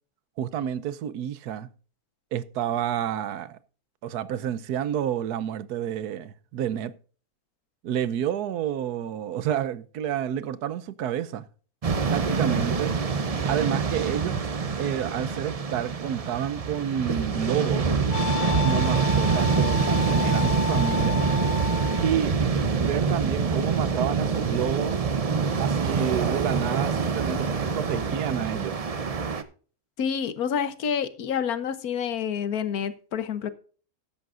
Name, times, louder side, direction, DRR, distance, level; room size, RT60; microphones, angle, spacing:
voice 1, 0.4-1.7 2.3-3.6 4.0-6.9 7.8-11.5 12.1-12.9 13.5-14.5 14.8-17.9 18.6-21.2 22.0-22.3 22.8-24.9 25.6-28.8, right 10 dB, 85° right, 1.3 m, -29 dB
sound 1, 11.8-29.4, right 5 dB, 40° right, 0.5 m, -25 dB
Wind instrument woodwind instrument, 16.9-22.2, left 6 dB, 50° left, 1.0 m, -32 dB
voice 2, 30.0-33.5, left 7 dB, 70° left, 1.4 m, -28 dB
14.0 x 10.5 x 2.5 m
omnidirectional pair, 1.6 m